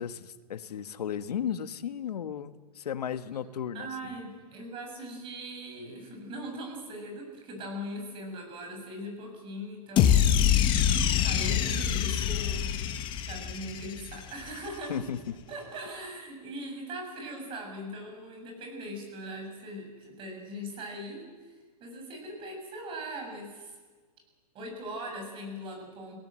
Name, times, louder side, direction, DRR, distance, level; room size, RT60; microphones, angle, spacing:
voice 1, 0.0-4.1 14.9-15.4, left 8 dB, 80° left, 11 dB, 1.6 m, -35 dB
voice 2, 3.7-10.5 10.8-12.7 13.2-15.0 15.5-21.2 21.8-23.8 24.5-26.2, equal, 25° right, 2 dB, 7.3 m, -40 dB
sound 1, 10.0-14.3, left 9 dB, 25° left, 1.6 m, -25 dB
29.0 x 18.0 x 7.8 m, 1.4 s
hypercardioid pair, 145°, 20 cm